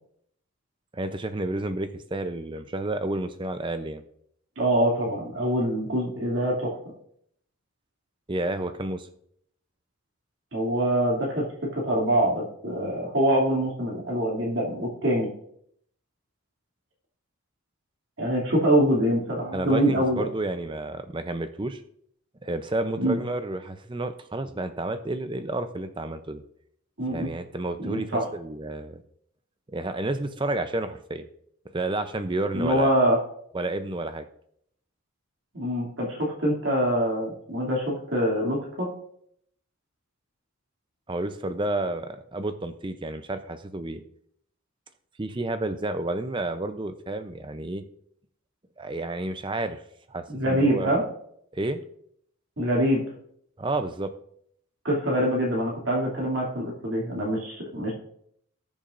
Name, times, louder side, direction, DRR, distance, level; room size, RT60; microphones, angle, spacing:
voice 1, 0.9-4.0 8.3-9.1 19.5-21.8 22.4-26.4 27.1-29.0 29.7-31.3 31.7-32.9 33.5-34.3 41.1-44.0 45.2-47.8 48.8-49.8 50.1-51.0 51.5-51.8 53.6-54.1, right 2 dB, 20° right, 9 dB, 0.6 m, -30 dB
voice 2, 4.6-6.7 10.5-15.3 18.2-20.2 23.0-23.2 27.0-27.3 27.8-28.3 32.5-33.2 35.5-38.9 50.3-51.0 52.6-53.0 54.8-57.9, right 1 dB, 55° right, -2 dB, 2.7 m, -24 dB
19.0 x 7.2 x 2.6 m, 0.69 s
head